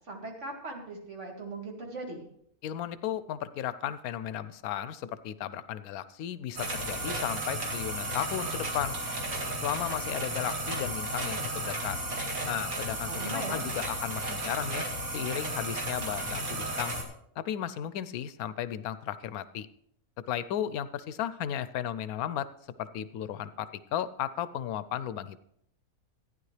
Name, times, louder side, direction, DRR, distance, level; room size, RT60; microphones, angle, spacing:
voice 1, 0.1-2.2 13.1-13.6, right 2 dB, 55° right, 0 dB, 2.4 m, -39 dB
voice 2, 2.6-9.0 9.6-12.0 12.5-14.9 15.1-16.9 17.4-19.7 20.3-22.5 22.8-25.4, left 10 dB, 85° left, 15 dB, 1.0 m, -35 dB
sound 1, 6.6-17.0, right 1 dB, 75° right, 2.4 m, -34 dB
14.5 x 9.7 x 3.2 m, 0.70 s
omnidirectional pair, 1.5 m